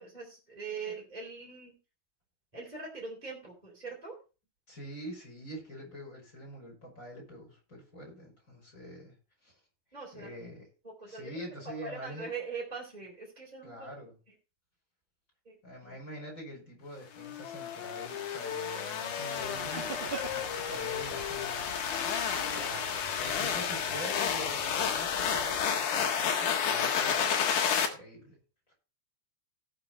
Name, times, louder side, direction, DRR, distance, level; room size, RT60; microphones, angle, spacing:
voice 1, 0.0-1.8 2.5-4.2 9.9-10.3 11.0-11.2 11.8-14.0 15.5-15.6 15.9-16.0 22.5-22.6, right 4 dB, 10° right, -3 dB, 3.4 m, -42 dB
voice 2, 4.7-9.1 9.4-9.5 10.1-10.7 11.1-12.3 13.6-14.2 15.6-21.8 22.5-28.4, equal, 20° left, -2 dB, 5.8 m, -45 dB
Wind instrument woodwind instrument, 17.1-22.7, left 10 dB, 85° left, 3.0 m, -40 dB
sound 1, 17.4-27.9, left 7 dB, 65° left, 2.9 m, -31 dB
sound 2, 19.3-25.7, right 4 dB, 65° right, 0.5 m, -45 dB
18.0 x 6.2 x 4.2 m, 0.33 s
omnidirectional pair, 4.3 m